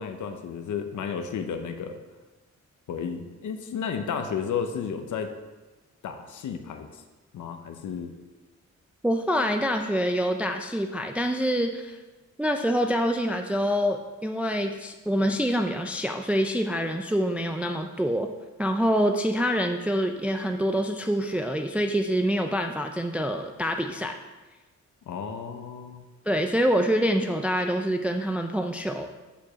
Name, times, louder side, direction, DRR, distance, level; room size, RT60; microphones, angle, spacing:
voice 1, 0.0-2.0 2.9-5.3 6.0-7.0 7.3-8.1 25.1-26.1, left 6 dB, 90° left, 6 dB, 0.7 m, -33 dB
voice 2, 9.0-12.0 12.4-18.3 18.6-24.2 26.3-29.1, equal, 5° right, 5 dB, 0.4 m, -26 dB
7.0 x 4.9 x 5.6 m, 1.2 s
wide cardioid pair, 125°, 29 cm